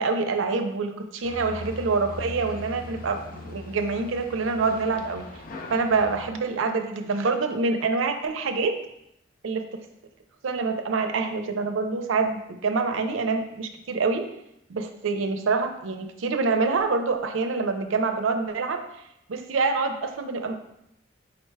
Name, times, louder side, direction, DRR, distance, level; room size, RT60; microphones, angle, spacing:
voice 1, 0.0-5.2 5.7-8.8 9.4-9.6 10.4-14.3 14.7-18.8 19.3-20.6, right 4 dB, 85° right, 7 dB, 0.5 m, -26 dB
sound 1, 1.2-6.3, left 2 dB, 45° left, 0.4 m, -40 dB
4.9 x 2.2 x 4.6 m, 0.80 s
head